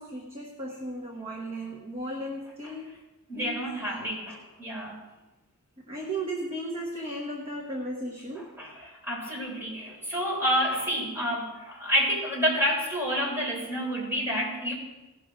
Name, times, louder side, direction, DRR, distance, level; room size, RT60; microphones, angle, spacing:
voice 1, 0.0-3.0 3.4-4.2 5.8-8.6, right 1 dB, 25° right, -1 dB, 1.0 m, -36 dB
voice 2, 3.3-5.0 8.6-14.7, equal, 10° right, -5 dB, 4.1 m, -29 dB
17.0 x 6.1 x 4.9 m, 1.1 s
head